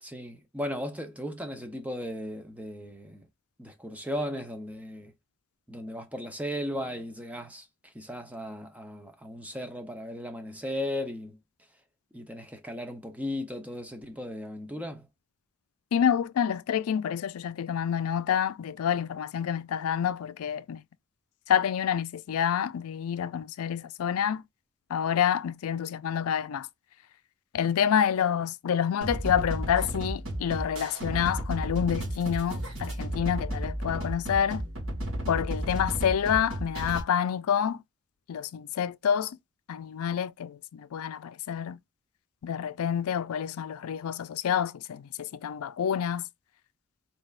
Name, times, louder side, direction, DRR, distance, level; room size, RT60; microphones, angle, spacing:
voice 1, 0.0-3.3 3.6-5.1 5.7-11.4 12.1-15.1, equal, 5° right, 0.7 m, -36 dB
voice 2, 15.9-20.8 21.5-24.4 24.9-26.7 27.5-34.7 35.3-37.8 38.3-39.4 39.7-41.8 42.4-46.3, left 8 dB, 85° left, 0.4 m, -28 dB
sound 1, 29.0-37.0, right 1 dB, 70° right, 2.1 m, -33 dB
4.4 x 3.3 x 2.4 m
head